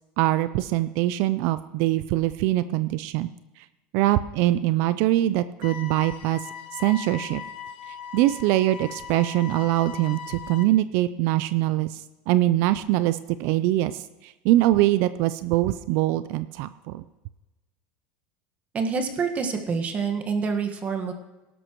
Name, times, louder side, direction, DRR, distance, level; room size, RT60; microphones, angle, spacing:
voice 1, 0.2-3.3 3.9-6.4 6.7-7.4 7.9-17.0, right 15 dB, 60° right, 14 dB, 0.4 m, -23 dB
sound 1, 5.6-10.6, left 7 dB, 85° left, 1.3 m, -39 dB
voice 2, 18.7-21.1, right 5 dB, 30° right, 5 dB, 1.5 m, -27 dB
17.5 x 12.0 x 3.1 m, 1.1 s
supercardioid pair, 120°, 5 cm